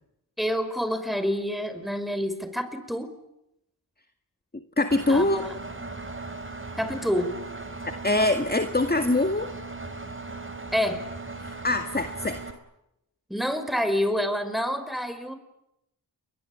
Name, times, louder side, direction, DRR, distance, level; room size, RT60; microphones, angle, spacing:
voice 1, 0.4-3.1 5.1-5.5 6.8-7.3 10.7-11.0 13.3-15.3, equal, ahead, 9 dB, 5.6 m, -27 dB
voice 2, 4.5-5.4 8.0-9.5 11.4-12.4, left 2 dB, 20° left, 8 dB, 2.0 m, -24 dB
Engine, 4.9-12.5, right 3 dB, 30° right, 4.2 m, -38 dB
29.5 x 22.0 x 8.8 m, 0.85 s
cardioid pair, 45°, 43 cm